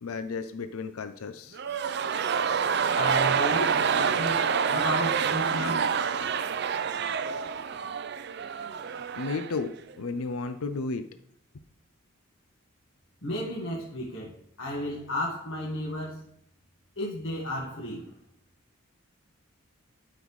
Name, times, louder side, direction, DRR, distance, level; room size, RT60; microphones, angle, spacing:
voice 1, 0.0-1.6 9.2-11.0, left 4 dB, 85° left, 0.5 m, -33 dB
sound 1, 1.5-9.6 9.9-10.0, right 6 dB, 50° right, 0.4 m, -27 dB
voice 2, 2.9-6.2 13.2-16.3 17.0-18.2, left 1 dB, 65° left, 1.6 m, -33 dB
12.0 x 5.4 x 3.2 m
head